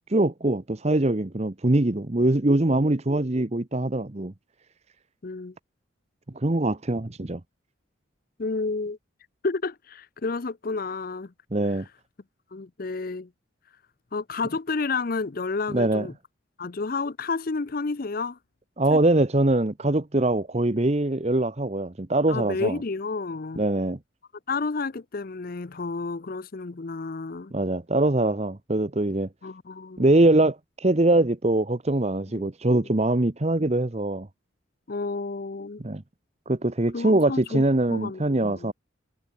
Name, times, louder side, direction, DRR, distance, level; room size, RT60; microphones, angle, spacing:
voice 1, 0.0-4.3 6.3-7.4 11.5-11.8 15.7-16.1 18.8-22.8 23.6-24.0 27.5-29.3 30.0-34.3 35.8-36.0 36.5-38.7, right 2 dB, 30° right, 0.9 m, -23 dB
voice 2, 5.2-5.5 8.4-9.0 9.4-11.3 12.5-13.3 14.1-16.1 16.6-18.4 18.9-19.0 22.3-23.6 24.5-27.5 29.4-30.1 32.3-32.5 34.9-35.8 36.9-37.6 37.9-38.7, left 3 dB, 45° left, 0.6 m, -30 dB
head